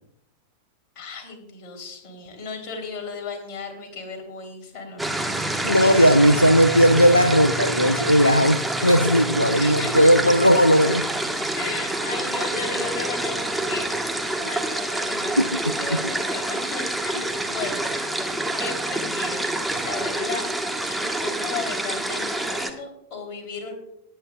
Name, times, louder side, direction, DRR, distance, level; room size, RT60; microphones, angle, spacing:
voice 1, 0.9-6.9 9.5-10.1 11.5-15.5 15.8-17.9 18.6-20.5 20.9-23.7, left 4 dB, 40° left, 3 dB, 3.1 m, -35 dB
sound 1, 5.0-22.7, right 1 dB, 5° right, 1.2 m, -27 dB
voice 2, 5.6-11.1 15.4-16.0, equal, 90° left, 11 dB, 0.4 m, -17 dB
19.5 x 8.8 x 2.3 m, 0.75 s
figure-of-eight pair, 90°, 0 cm